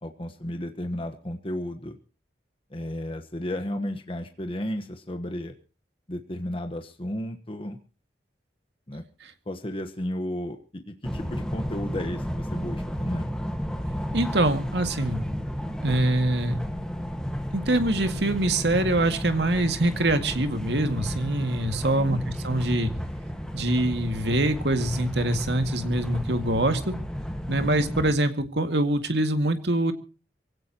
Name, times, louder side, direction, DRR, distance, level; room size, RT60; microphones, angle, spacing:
voice 1, 0.0-2.0 2.7-5.5 6.1-7.8 8.9-9.0 9.5-13.3 22.0-22.2, left 1 dB, 30° left, 5 dB, 1.2 m, -33 dB
sound 1, 11.0-28.1, equal, 5° left, 1.6 m, -33 dB
voice 2, 14.1-15.2 15.8-16.6 17.5-22.2 22.4-22.9 23.5-26.9 27.5-29.9, right 1 dB, 75° right, 8 dB, 2.1 m, -24 dB
24.0 x 16.5 x 3.0 m, 0.34 s
head